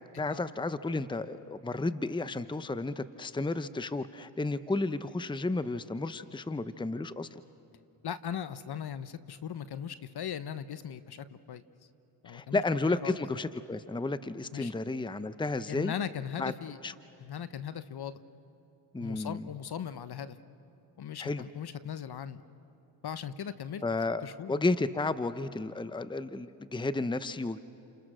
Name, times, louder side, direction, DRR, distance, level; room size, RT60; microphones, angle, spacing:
voice 1, 0.2-7.4 12.3-15.9 16.4-16.5 16.8-16.9 18.9-19.4 21.2-21.4 23.8-24.2 24.5-27.6, left 2 dB, 10° left, 13 dB, 0.9 m, -32 dB
voice 2, 8.0-11.6 12.2-13.2 14.5-14.7 15.7-16.8 17.2-18.2 19.0-20.4 21.0-22.4 23.0-23.8 24.2-24.6, left 8 dB, 50° left, 13 dB, 1.2 m, -38 dB
29.5 x 28.5 x 6.4 m, 2.9 s
supercardioid pair, 55°, 49 cm